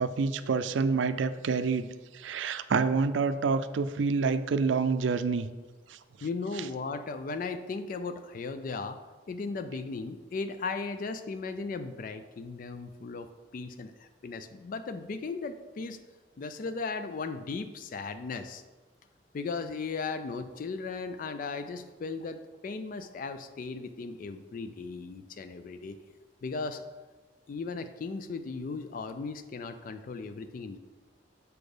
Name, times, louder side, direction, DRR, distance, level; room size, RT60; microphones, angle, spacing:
voice 1, 0.0-1.9 2.1-5.5 5.9-6.0 6.6-6.7, right 4 dB, 85° right, 12 dB, 0.4 m, -27 dB
voice 2, 6.2-9.0 9.3-13.3 13.5-13.9 14.2-16.0 16.4-18.6 19.3-26.0 26.4-26.8 27.5-30.8, left 4 dB, 50° left, 10 dB, 0.3 m, -36 dB
6.9 x 4.2 x 4.9 m, 1.3 s
head